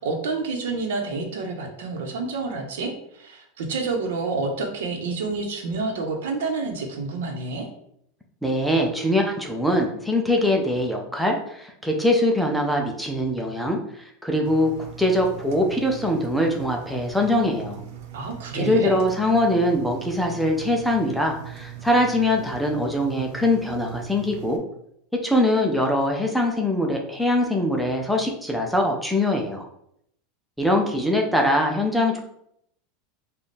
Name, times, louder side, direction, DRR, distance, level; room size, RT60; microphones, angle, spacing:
voice 1, 0.0-7.7 18.1-18.9, right 3 dB, 85° right, 3 dB, 0.9 m, -28 dB
voice 2, 8.4-17.8 18.6-24.6 25.1-29.7 30.6-32.2, left 1 dB, ahead, 1 dB, 0.4 m, -22 dB
Engine, 14.4-24.6, right 9 dB, 50° right, 0.6 m, -40 dB
3.4 x 2.3 x 4.1 m, 0.72 s
supercardioid pair, 175°, 0 cm